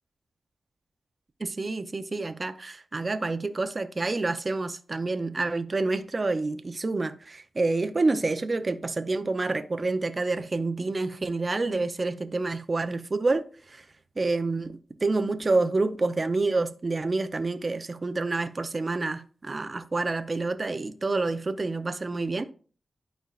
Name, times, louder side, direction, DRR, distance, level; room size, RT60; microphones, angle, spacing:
voice 1, 1.4-13.9 14.2-22.4, right 3 dB, 45° right, 0.7 m, -28 dB
12.0 x 4.5 x 2.5 m
cardioid pair, 50°, 0 cm